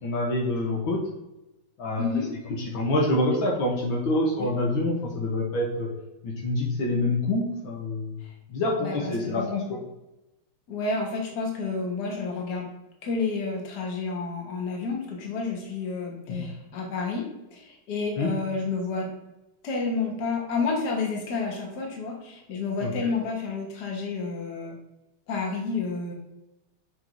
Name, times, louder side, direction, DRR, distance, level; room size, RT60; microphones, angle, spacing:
voice 1, 0.0-1.0 1.8-2.1 2.7-5.9 6.2-8.2 8.5-9.8 16.3-16.5 18.2-18.3 22.8-22.9, left 2 dB, 70° left, -2 dB, 1.8 m, -26 dB
voice 2, 2.0-2.3 4.4-4.5 8.8-9.4 10.7-12.7 13.0-19.1 19.6-24.8 25.3-26.1, left 4 dB, 55° left, 0 dB, 1.7 m, -30 dB
7.8 x 2.8 x 4.6 m, 0.95 s
omnidirectional pair, 2.3 m